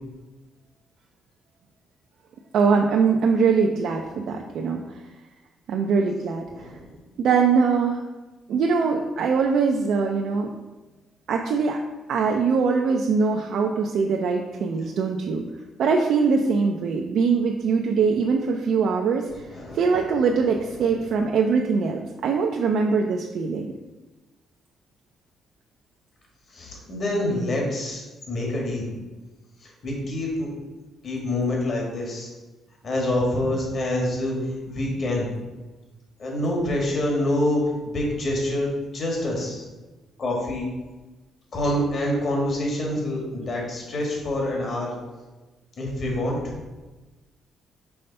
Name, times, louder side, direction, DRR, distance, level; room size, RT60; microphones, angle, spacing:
voice 1, 2.5-5.0 5.7-6.7 7.2-8.0 8.5-10.5 11.3-11.8 12.1-15.4 15.8-19.3 19.7-23.7, right 5 dB, 70° right, 1 dB, 0.5 m, -22 dB
voice 2, 6.5-6.9 19.3-19.9 26.5-28.9 29.6-30.5 31.0-32.3 32.8-35.4 36.2-37.6 37.9-39.6 40.2-40.7 41.5-44.9 45.8-46.6, left 1 dB, 55° left, -2 dB, 2.0 m, -26 dB
5.6 x 3.3 x 5.4 m, 1.2 s
cardioid pair, 90°, 0 cm